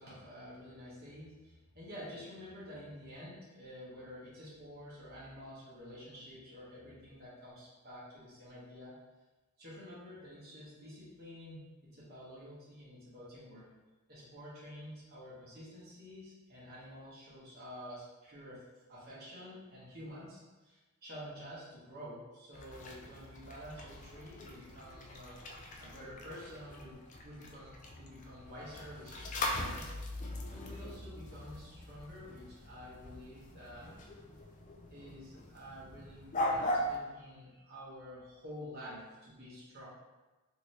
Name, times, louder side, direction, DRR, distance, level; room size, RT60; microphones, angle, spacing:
voice 1, 0.0-9.0 9.6-13.7 14.1-30.2 30.5-33.9 34.9-39.9, equal, 45° right, -8 dB, 1.0 m, -49 dB
sound 1, 22.5-37.0, left 1 dB, 35° left, 0.3 m, -41 dB
2.9 x 2.7 x 3.1 m, 1.2 s
head